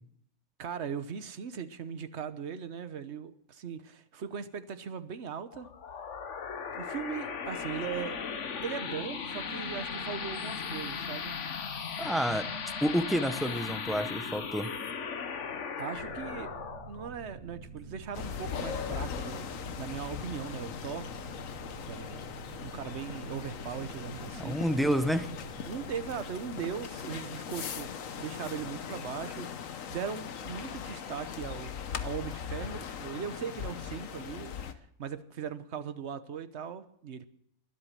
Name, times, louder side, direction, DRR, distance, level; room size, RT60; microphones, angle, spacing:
voice 1, 0.6-5.7 6.7-8.2 8.6-11.3 15.8-16.5 16.9-19.5 19.8-21.1 21.9-24.6 25.7-31.7 32.0-34.7 35.0-37.2, right 7 dB, 60° right, 12 dB, 1.2 m, -39 dB
sound 1, 5.5-18.6, left 6 dB, 65° left, 1.4 m, -38 dB
voice 2, 12.0-12.5 12.8-14.7 24.3-25.3, equal, ahead, 9 dB, 0.7 m, -29 dB
sound 2, 15.9-29.2, right 5 dB, 80° right, 1.6 m, -49 dB
sound 3, 18.1-34.7, left 7 dB, 90° left, 1.4 m, -40 dB
21.0 x 8.2 x 7.4 m, 0.74 s
omnidirectional pair, 1.4 m